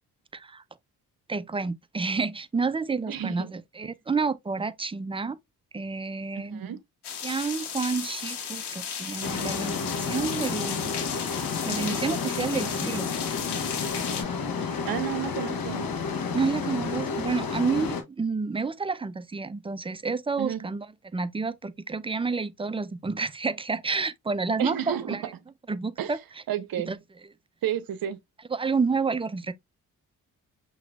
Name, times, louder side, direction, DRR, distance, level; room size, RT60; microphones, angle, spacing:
voice 1, 0.3-0.6 1.3-5.4 5.7-6.6 7.2-10.9 11.6-13.1 14.6-14.7 16.3-20.9 21.1-25.2 25.7-26.2 26.9-27.0 28.5-29.5, right 4 dB, 15° right, 0.5 m, -29 dB
voice 2, 3.1-3.5 3.8-3.9 6.3-6.8 14.9-16.0 20.4-20.7 24.6-25.3 26.0-26.1 26.5-26.9 27.6-28.2, right 10 dB, 60° right, 0.8 m, -31 dB
sound 1, 7.0-14.2, left 7 dB, 75° left, 1.6 m, -35 dB
sound 2, 9.2-18.0, left 5 dB, 55° left, 1.3 m, -31 dB
5.8 x 3.1 x 2.3 m
supercardioid pair, 50°, 40 cm